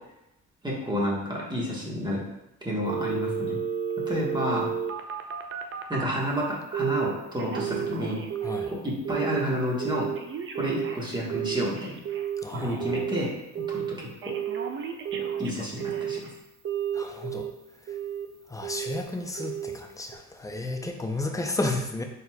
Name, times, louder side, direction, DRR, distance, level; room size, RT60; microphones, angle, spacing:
voice 1, 0.6-2.2 2.6-3.6 4.1-4.7 5.9-8.2 8.7-10.1 10.6-11.9 12.5-13.3 13.7-14.3 15.4-16.2, equal, 15° right, -4 dB, 1.3 m, -30 dB
Telephone, 2.8-6.1 6.7-7.1 7.4-8.7 9.1-9.4 9.8-13.2 13.6-13.9 14.2-16.3 16.7-17.5 17.9-18.3 18.6-19.0 19.4-19.8 20.1-20.2, right 8 dB, 40° right, 0.5 m, -32 dB
voice 2, 8.4-8.7 12.4-13.1 16.9-17.5 17.9-18.0 18.5-22.0, left 2 dB, 10° left, 3 dB, 0.5 m, -32 dB
4.3 x 4.1 x 2.2 m, 0.88 s
cardioid pair, 90°, 30 cm